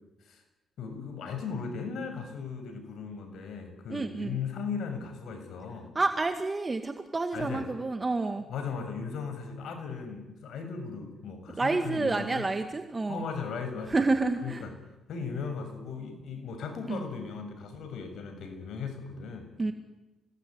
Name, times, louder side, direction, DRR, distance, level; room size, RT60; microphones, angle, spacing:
voice 1, 0.8-5.9 7.3-7.6 8.5-12.4 13.1-14.1 14.4-14.7 15.1-19.5, left 5 dB, 70° left, 6 dB, 6.8 m, -37 dB
voice 2, 3.9-4.4 6.0-8.4 11.6-13.2 13.9-14.6 16.9-17.0 19.6-19.7, right 3 dB, 25° right, 7 dB, 2.0 m, -29 dB
27.0 x 20.0 x 9.7 m, 1.1 s
cardioid pair, 90°, 0 cm